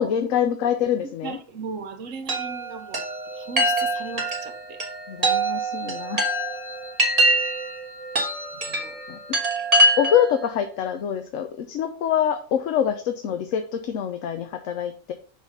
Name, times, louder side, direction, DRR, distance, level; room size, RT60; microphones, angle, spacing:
voice 1, 0.0-1.4 5.1-6.2 9.1-9.2 10.0-15.1, left 9 dB, 75° left, 1.0 m, -25 dB
voice 2, 1.2-3.0 3.3-4.8 8.5-9.0, right 5 dB, 70° right, 1.2 m, -37 dB
Chime, 2.3-10.4, right 1 dB, 30° right, 1.3 m, -24 dB
6.2 x 3.6 x 5.5 m
omnidirectional pair, 1.4 m